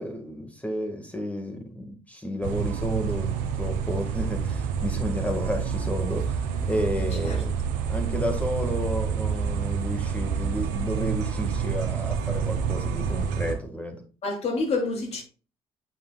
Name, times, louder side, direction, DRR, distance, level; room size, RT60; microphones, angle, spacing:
voice 1, 0.0-3.3 3.6-7.6 7.9-14.0, equal, 10° left, 1.7 m, -32 dB
sound 1, 2.4-13.5, right 7 dB, 85° right, 1.1 m, -28 dB
voice 2, 7.0-7.4 14.2-15.2, left 3 dB, 55° left, 2.9 m, -28 dB
8.3 x 5.8 x 2.4 m
supercardioid pair, 65°, 13 cm